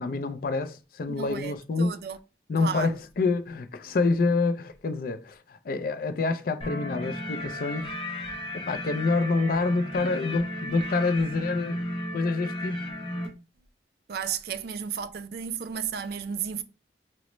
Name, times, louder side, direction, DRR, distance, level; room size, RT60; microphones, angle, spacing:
voice 1, 0.0-2.0 2.5-7.9 8.5-11.8 12.1-12.8, left 3 dB, 50° left, 0.4 m, -27 dB
voice 2, 1.1-2.2 2.6-3.0 14.1-16.6, right 7 dB, 60° right, 0.4 m, -33 dB
sound 1, 6.6-13.3, left 1 dB, 30° left, 0.9 m, -34 dB
4.9 x 2.1 x 3.0 m
head